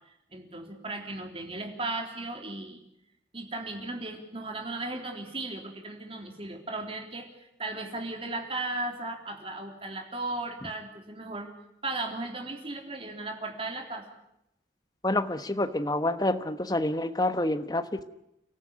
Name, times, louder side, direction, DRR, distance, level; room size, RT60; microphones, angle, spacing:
voice 1, 0.3-2.8 3.3-11.5 11.8-14.1, right 2 dB, 30° right, 3 dB, 3.5 m, -36 dB
voice 2, 15.0-18.0, left 1 dB, 20° left, 9 dB, 1.2 m, -28 dB
30.0 x 14.0 x 9.6 m, 0.84 s
head